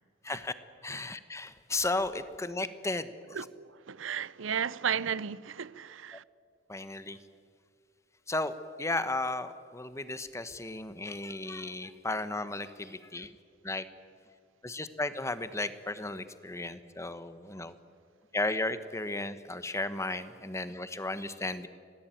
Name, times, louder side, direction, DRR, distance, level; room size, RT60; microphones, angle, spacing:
voice 1, 0.8-3.5 6.7-7.2 8.3-13.3 13.6-13.9 14.6-17.7 18.3-21.7, left 2 dB, 15° left, 1.2 m, -34 dB
voice 2, 3.3-6.2, right 7 dB, 90° right, 0.6 m, -34 dB
26.5 x 18.5 x 9.2 m
head